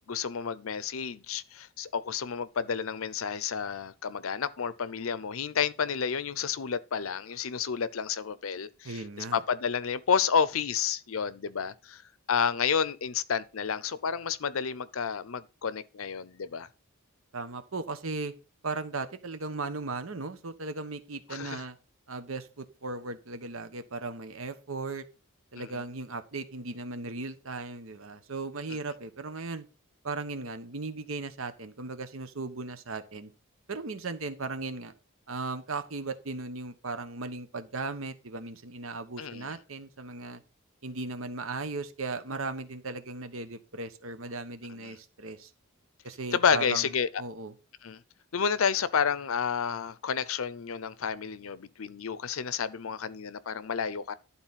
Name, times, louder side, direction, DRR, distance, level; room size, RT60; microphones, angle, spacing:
voice 1, 0.0-12.0 12.3-16.7 21.3-21.6 25.6-25.7 39.2-39.6 44.8-44.9 46.3-47.1 47.8-48.0 48.3-54.1, left 6 dB, 85° left, 0.6 m, -30 dB
voice 2, 8.8-9.4 17.3-18.3 18.6-21.8 22.1-25.0 25.5-29.7 30.0-33.3 33.7-34.9 35.3-40.4 40.8-45.5 46.0-46.9 47.2-47.5, right 3 dB, 80° right, 1.1 m, -37 dB
11.5 x 4.0 x 5.7 m
head